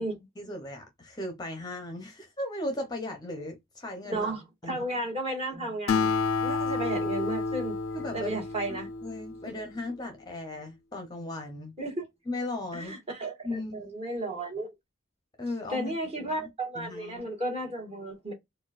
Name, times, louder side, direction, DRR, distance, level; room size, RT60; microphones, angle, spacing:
voice 1, 0.4-4.3 4.6-4.9 7.9-8.4 8.7-11.8 12.3-12.9 13.4-13.9 15.4-15.9 16.2-16.5 16.7-17.3, left 2 dB, 20° left, 0.7 m, -37 dB
voice 2, 4.0-6.1 6.4-7.8 8.1-8.9 9.4-9.5 11.8-12.0 12.7-14.7 15.7-18.3, right 1 dB, 30° right, 1.4 m, -33 dB
Acoustic guitar, 5.9-9.6, left 4 dB, 70° left, 0.4 m, -30 dB
4.3 x 2.3 x 2.4 m
head